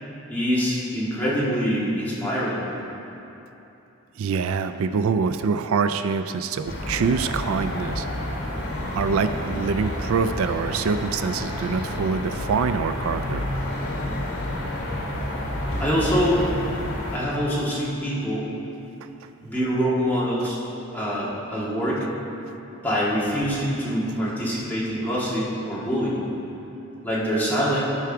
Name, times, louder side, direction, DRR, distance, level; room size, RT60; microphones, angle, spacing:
voice 1, 0.3-2.6 15.8-16.4 17.1-18.5 19.4-20.6 20.9-22.1 22.8-26.2 27.0-27.8, equal, 10° left, -8 dB, 1.8 m, -24 dB
voice 2, 4.2-8.1 8.9-13.5, right 5 dB, 75° right, 9 dB, 0.3 m, -25 dB
sound 1, 6.7-17.2, left 1 dB, 70° left, 2.2 m, -29 dB
13.0 x 4.7 x 5.9 m, 3.0 s
head